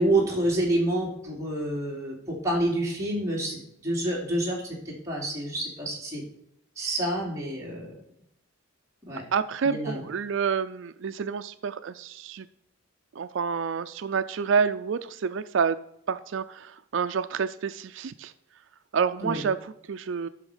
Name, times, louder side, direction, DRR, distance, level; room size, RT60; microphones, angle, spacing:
voice 1, 0.0-6.2 6.8-7.9 9.1-9.2 9.6-10.0 19.2-19.4, right 1 dB, 15° right, -4 dB, 2.9 m, -28 dB
voice 2, 9.3-12.5 13.2-15.8 16.1-18.3 18.9-20.3, right 6 dB, 65° right, 12 dB, 0.4 m, -28 dB
11.5 x 6.2 x 4.9 m, 0.75 s
head